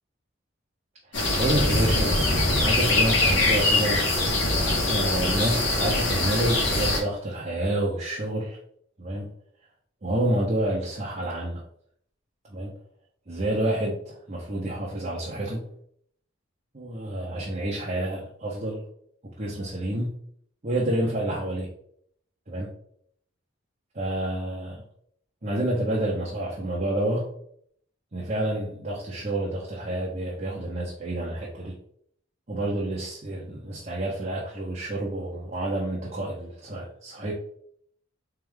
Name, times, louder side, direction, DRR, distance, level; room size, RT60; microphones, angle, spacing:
sound 1, 1.1-7.0, left 2 dB, 60° left, 1.4 m, -23 dB
voice 1, 1.4-2.3 2.6-4.0 4.9-8.6 9.0-9.3 10.0-11.6 12.5-12.7 13.3-15.6 16.7-18.8 19.4-20.1 20.6-21.7 22.5-22.7 23.9-24.8 25.4-27.3 28.1-31.7 32.5-37.3, right 1 dB, 35° right, -4 dB, 0.8 m, -28 dB
3.7 x 3.5 x 3.6 m, 0.65 s
head